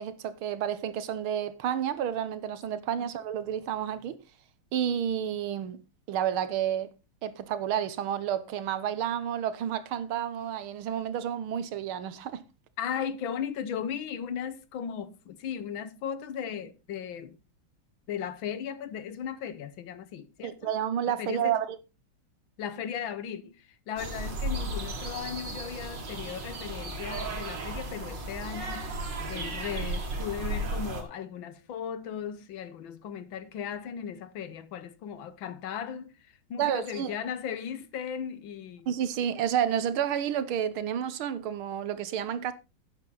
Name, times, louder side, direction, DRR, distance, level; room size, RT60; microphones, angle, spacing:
voice 1, 0.0-4.2 4.7-5.8 6.1-6.9 7.2-12.4 20.4-21.8 36.6-37.2 38.9-42.5, right 9 dB, 85° right, 1.9 m, -30 dB
voice 2, 12.8-17.4 18.1-20.7 21.2-21.6 22.6-28.9 29.3-36.2 36.5-38.9, left 8 dB, 75° left, 1.7 m, -36 dB
sound 1, 24.0-31.0, right 2 dB, 60° right, 2.8 m, -35 dB
11.5 x 8.8 x 3.9 m
omnidirectional pair, 2.3 m